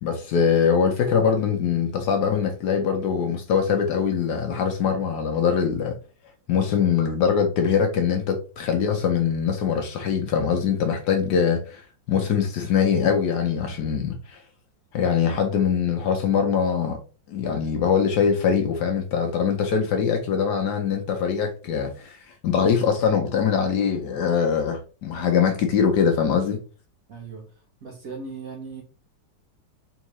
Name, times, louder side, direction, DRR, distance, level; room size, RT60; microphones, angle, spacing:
voice 1, 0.0-5.9 6.5-11.8 12.1-14.4 14.9-17.0 17.3-26.6, left 7 dB, 70° left, 1.1 m, -22 dB
voice 2, 27.1-27.5 27.8-28.8, right 4 dB, 55° right, 1.0 m, -37 dB
3.6 x 3.6 x 3.0 m
omnidirectional pair, 2.2 m